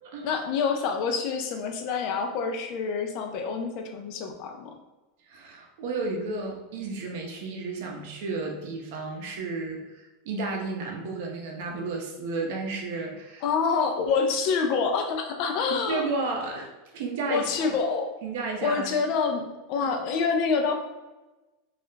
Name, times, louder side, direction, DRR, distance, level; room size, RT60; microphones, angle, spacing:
voice 1, 0.2-4.7 13.4-16.1 17.3-18.1 18.6-20.7, left 5 dB, 50° left, 4 dB, 0.4 m, -27 dB
voice 2, 5.2-13.4 15.7-17.5 18.2-19.0 19.8-19.9, right 3 dB, 65° right, 0 dB, 0.6 m, -32 dB
2.3 x 2.0 x 3.1 m, 1.1 s
supercardioid pair, 155°, 0 cm